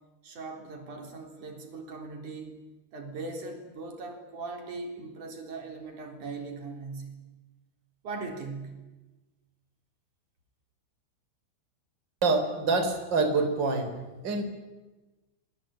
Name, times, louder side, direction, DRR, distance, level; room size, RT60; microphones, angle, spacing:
voice 1, 0.2-2.6 2.9-7.2 8.0-8.8, right 3 dB, 40° right, 3 dB, 4.6 m, -39 dB
voice 2, 12.2-13.9 14.2-14.4, right 3 dB, 25° right, 5 dB, 3.9 m, -26 dB
27.5 x 21.5 x 8.9 m, 1.1 s
omnidirectional pair, 5.8 m